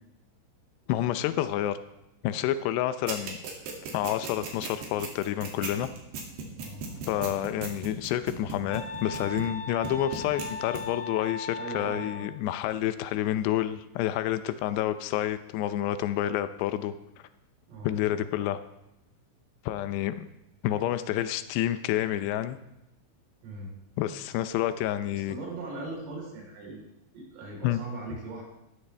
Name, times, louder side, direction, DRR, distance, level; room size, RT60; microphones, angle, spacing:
voice 1, 0.9-1.8 2.2-3.4 3.9-5.9 7.1-16.9 17.8-18.6 19.7-20.3 20.6-22.6 24.0-25.3 27.6-27.8, left 12 dB, 85° left, 11 dB, 2.4 m, -29 dB
sound 1, 3.1-9.6 9.8-10.5 10.7-10.8, right 5 dB, 60° right, 4.1 m, -36 dB
voice 2, 6.5-7.5 11.6-12.3 17.7-18.3 23.4-23.7 25.1-26.9 27.1-28.4, right 2 dB, 85° right, -3 dB, 6.7 m, -40 dB
sound 2, 8.7-12.3, left 3 dB, 70° left, 2.1 m, -38 dB
17.0 x 14.0 x 3.4 m, 0.90 s
omnidirectional pair, 5.7 m